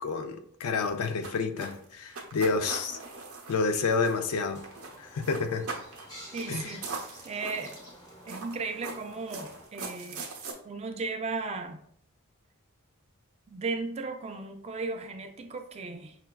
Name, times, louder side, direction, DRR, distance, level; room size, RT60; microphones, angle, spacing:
voice 1, 0.0-3.0 3.5-4.6 5.1-5.7 6.5-6.7, left 4 dB, 80° left, 8 dB, 0.4 m, -29 dB
sound 1, 0.8-4.4 4.6-5.0 5.2-6.1 6.4-6.5 6.8-7.9 8.3-10.5, right 4 dB, 75° right, 0.7 m, -40 dB
sound 2, 4.4-9.7, equal, 15° left, 1.0 m, -50 dB
voice 2, 6.3-7.8 8.3-10.3 10.6-11.8 13.5-16.2, right 4 dB, 30° right, 6 dB, 0.3 m, -36 dB
5.6 x 2.2 x 2.2 m, 0.66 s
head